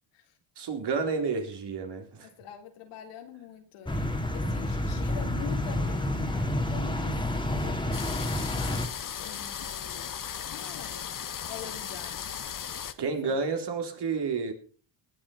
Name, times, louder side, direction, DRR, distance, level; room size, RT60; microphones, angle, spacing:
voice 1, 0.6-2.3 13.0-14.5, right 4 dB, 55° right, 5 dB, 3.8 m, -30 dB
voice 2, 2.2-7.2 7.5-10.1 10.5-11.1 11.5-12.4 13.0-13.4 14.4-14.5, left 8 dB, 85° left, 4 dB, 3.5 m, -45 dB
sound 1, 3.9-8.9, left 1 dB, 10° left, 2.6 m, -29 dB
sound 2, 7.9-12.9, left 8 dB, 40° left, 1.4 m, -37 dB
19.5 x 7.3 x 5.6 m, 0.40 s
cardioid pair, 90°, 49 cm